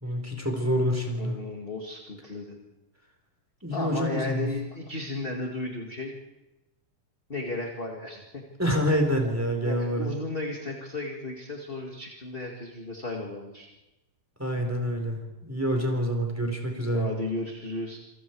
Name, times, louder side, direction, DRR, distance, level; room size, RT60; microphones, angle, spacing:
voice 1, 0.0-1.4 3.6-4.5 8.6-10.1 14.4-17.1, equal, 5° right, 2 dB, 4.1 m, -27 dB
voice 2, 1.2-2.6 3.7-6.1 7.3-8.4 9.6-13.7 16.9-18.0, left 2 dB, 20° left, 0 dB, 1.6 m, -34 dB
27.5 x 24.0 x 4.8 m, 0.99 s
omnidirectional pair, 3.8 m